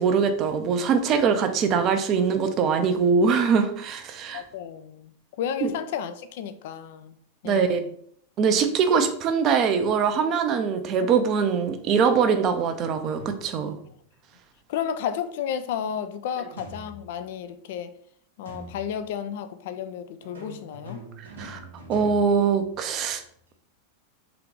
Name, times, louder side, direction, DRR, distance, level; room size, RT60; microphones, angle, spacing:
voice 1, 0.0-4.4 5.6-5.7 7.4-7.8 8.4-13.8 21.4-21.6 21.9-23.2, right 6 dB, 35° right, 8 dB, 0.5 m, -22 dB
voice 2, 4.3-7.2 7.4-7.9 14.7-17.9 18.4-21.0, left 8 dB, 50° left, 10 dB, 0.4 m, -32 dB
sound 1, 13.2-13.9 16.6-17.4 18.5-19.2 20.2-23.2, equal, 70° right, 1.0 m, -43 dB
3.7 x 2.9 x 3.5 m, 0.64 s
figure-of-eight pair, 90°, 0 cm